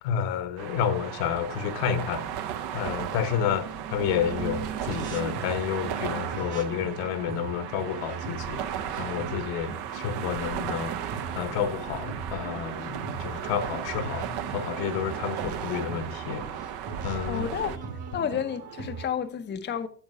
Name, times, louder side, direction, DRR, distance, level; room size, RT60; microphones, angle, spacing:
voice 1, 0.0-2.2 2.7-8.6 9.0-10.9 11.3-16.4 17.0-17.5, left 8 dB, 75° left, 1.5 m, -30 dB
sound 1, 0.6-17.8, right 9 dB, 60° right, 1.0 m, -35 dB
sound 2, 4.0-19.1, right 5 dB, 40° right, 1.7 m, -40 dB
voice 2, 17.3-17.8 18.1-19.9, left 8 dB, 25° left, 0.7 m, -31 dB
8.9 x 6.4 x 5.0 m
supercardioid pair, 90°, 44 cm